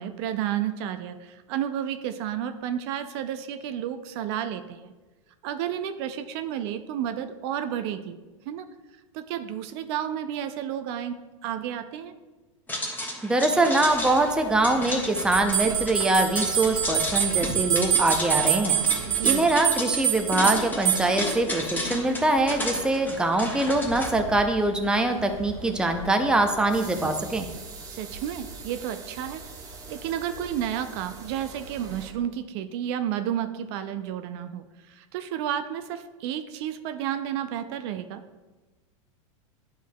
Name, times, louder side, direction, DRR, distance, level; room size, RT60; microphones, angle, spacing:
voice 1, 0.0-4.9 5.4-8.2 8.5-8.7 9.1-11.2 11.4-12.1 19.0-19.5 27.9-29.4 29.9-38.2, right 10 dB, 55° right, 9 dB, 0.5 m, -31 dB
sound 1, 12.7-24.1, left 1 dB, 10° left, 1.2 m, -33 dB
voice 2, 13.2-18.8 19.2-27.5, right 2 dB, 5° right, 5 dB, 0.5 m, -23 dB
sound 2, 13.9-32.1, right 3 dB, 20° right, 0.9 m, -42 dB
sound 3, 15.3-21.4, right 12 dB, 90° right, 1.4 m, -25 dB
10.0 x 4.7 x 2.3 m, 1.2 s
hypercardioid pair, 110°, 17 cm